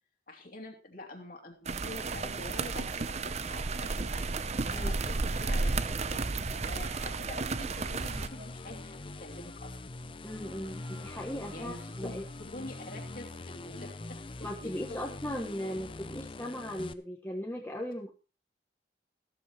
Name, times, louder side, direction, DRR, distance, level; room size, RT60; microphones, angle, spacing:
voice 1, 0.3-4.3 4.7-9.8 11.5-15.0, left 1 dB, 50° left, 1 dB, 2.8 m, -46 dB
sound 1, 1.7-8.3, right 3 dB, 35° right, 0.7 m, -32 dB
sound 2, 6.5-15.0, right 1 dB, 55° right, 5.2 m, -58 dB
sound 3, 7.6-16.9, left 2 dB, 30° left, 0.5 m, -43 dB
voice 2, 10.2-12.2 14.4-18.1, equal, 10° left, -1 dB, 1.4 m, -38 dB
14.5 x 13.5 x 3.1 m, 0.32 s
head